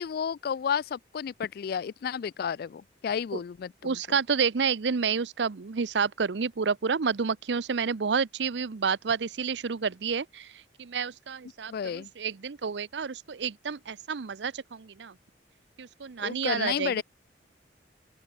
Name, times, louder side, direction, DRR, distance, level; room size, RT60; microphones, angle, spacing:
voice 1, 0.0-4.2 11.7-12.1 16.2-17.0, left 7 dB, 55° left, 0.3 m, -32 dB
voice 2, 3.8-10.5 10.8-15.1 15.8-17.0, right 5 dB, 75° right, 0.6 m, -29 dB
open air
head